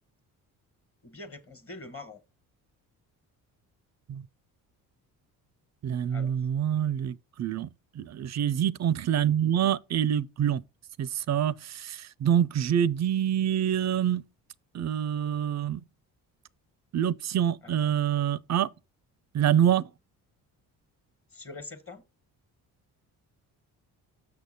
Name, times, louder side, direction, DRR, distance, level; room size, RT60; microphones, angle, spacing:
voice 1, 1.0-2.2 6.1-6.5 17.6-17.9 21.3-22.0, left 3 dB, 30° left, 1.4 m, -44 dB
voice 2, 5.8-7.7 8.0-10.6 11.0-14.2 14.7-15.8 16.9-18.7 19.3-19.8, right 9 dB, 40° right, 0.5 m, -26 dB
6.7 x 6.0 x 4.1 m
hypercardioid pair, 50°, 45 cm